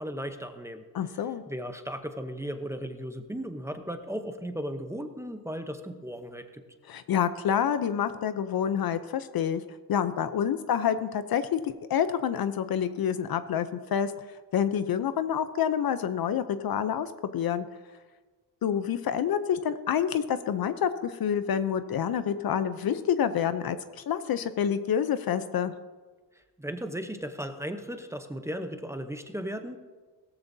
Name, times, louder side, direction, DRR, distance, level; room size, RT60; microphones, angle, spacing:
voice 1, 0.0-6.6 26.6-29.8, equal, 5° right, 6 dB, 0.8 m, -36 dB
voice 2, 0.9-1.4 6.9-9.6 9.9-14.1 14.5-17.7 18.6-25.7, left 8 dB, 55° left, 12 dB, 0.6 m, -28 dB
17.0 x 14.0 x 2.7 m, 1.4 s
cardioid pair, 125°, 44 cm